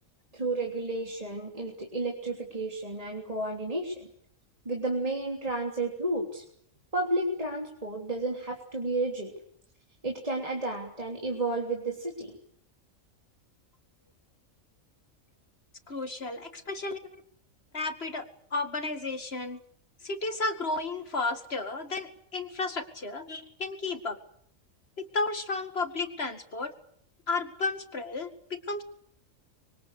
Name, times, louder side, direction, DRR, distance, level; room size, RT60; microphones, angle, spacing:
voice 1, 0.3-4.1 4.6-6.4 6.9-9.3 10.0-12.3, right 2 dB, 25° right, 0 dB, 3.4 m, -32 dB
voice 2, 15.9-17.0 17.7-18.2 18.5-19.6 20.0-24.2 25.0-26.7 27.3-28.8, left 3 dB, 50° left, 8 dB, 2.4 m, -33 dB
26.0 x 23.5 x 8.4 m, 0.66 s
omnidirectional pair, 1.4 m